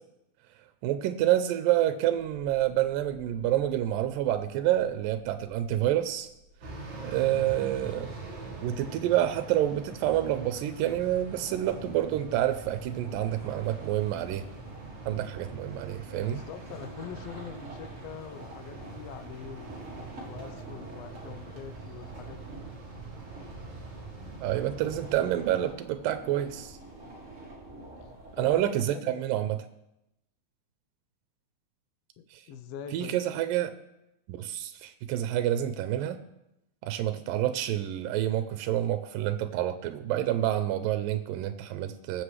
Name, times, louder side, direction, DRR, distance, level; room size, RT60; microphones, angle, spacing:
voice 1, 0.8-6.3 7.0-8.2 8.6-14.5 15.1-16.4 24.4-26.8 28.3-29.6 32.3-32.4 32.9-33.7 34.3-36.2 36.8-42.2, right 12 dB, 85° right, 9 dB, 2.3 m, -28 dB
sound 1, 2.2-7.0, left 1 dB, 60° left, 1.6 m, -52 dB
sound 2, 6.6-25.7, right 3 dB, 40° right, 1.8 m, -43 dB
sound 3, 11.3-28.6, right 2 dB, 25° right, 2.0 m, -48 dB
voice 2, 16.1-19.7 20.3-22.6 24.5-25.0 28.0-28.1 28.4-29.3 32.2-33.2, left 8 dB, 90° left, 8 dB, 1.4 m, -44 dB
21.5 x 7.5 x 3.2 m, 0.87 s
omnidirectional pair, 4.0 m